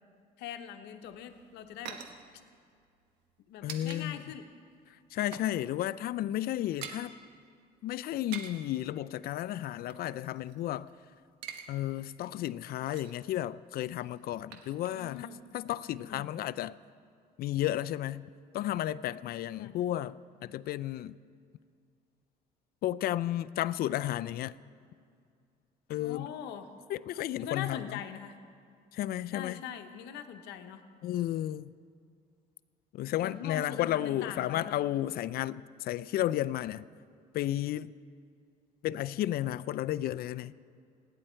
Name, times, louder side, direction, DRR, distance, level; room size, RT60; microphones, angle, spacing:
voice 1, 0.4-2.0 3.5-4.5 14.9-15.4 15.8-16.3 19.6-19.8 26.0-26.7 27.4-28.4 29.3-30.8 33.2-34.8, left 9 dB, 85° left, 1.0 m, -42 dB
sound 1, 1.0-4.0 4.3-4.5 4.8-5.6 5.8-6.0 6.2-7.1 8.1-8.7 9.5-10.9 11.2-11.7 12.0-12.1 12.5-13.3 13.9-15.2 15.5-15.6, right 7 dB, 85° right, 1.3 m, -46 dB
voice 2, 3.6-4.2 5.1-7.1 7.8-10.9 11.7-15.3 15.5-16.8 17.4-18.3 18.5-21.2 22.8-24.6 25.9-26.3 26.9-28.0 28.9-29.6 31.0-31.7 32.9-36.8 37.3-37.9 38.8-40.5, left 13 dB, 65° left, 0.4 m, -33 dB
28.5 x 10.0 x 4.5 m
cardioid pair, 110°, 17 cm